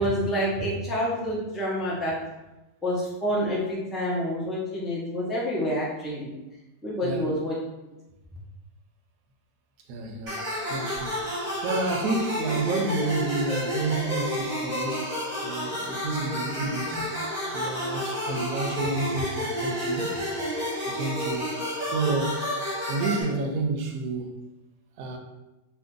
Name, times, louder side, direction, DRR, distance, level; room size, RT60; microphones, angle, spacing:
voice 1, 0.0-2.2 2.8-6.3 6.8-7.6 16.9-17.0, equal, ahead, -6 dB, 0.3 m, -28 dB
voice 2, 7.0-7.4 9.9-10.4 10.7-11.2 11.6-15.1 15.4-17.0 17.5-20.2 20.8-21.5 21.8-22.5 22.9-24.4 25.0-25.2, right 3 dB, 75° right, 3 dB, 1.0 m, -30 dB
sound 1, 10.3-23.2, equal, 30° right, 1.0 m, -30 dB
2.6 x 2.6 x 3.6 m, 1.0 s
omnidirectional pair, 1.6 m